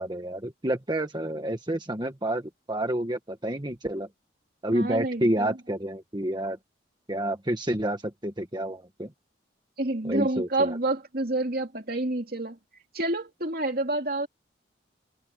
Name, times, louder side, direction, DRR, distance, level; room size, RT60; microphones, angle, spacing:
voice 1, 0.0-4.1 4.6-6.6 7.1-9.1 10.0-10.8, right 1 dB, 25° right, 1.5 m, -29 dB
voice 2, 4.7-5.5 9.8-12.6 12.9-14.3, right 2 dB, 50° right, 3.0 m, -28 dB
head